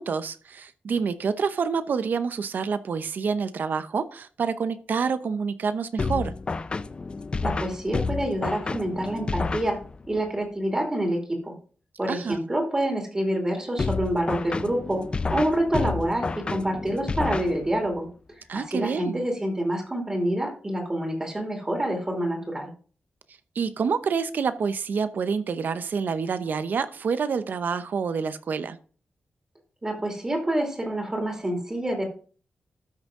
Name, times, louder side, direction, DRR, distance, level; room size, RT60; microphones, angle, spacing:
voice 1, 0.0-6.3 12.1-12.4 18.5-19.2 23.6-28.8, right 5 dB, 65° right, 0.8 m, -27 dB
sound 1, 6.0-10.2 13.8-18.0, left 4 dB, 30° left, 0.5 m, -30 dB
voice 2, 7.4-9.8 10.1-11.5 12.0-15.0 15.3-18.1 18.5-22.7 29.8-32.0, right 1 dB, 20° right, 2.5 m, -27 dB
13.0 x 6.3 x 3.7 m
wide cardioid pair, 160°, 3 cm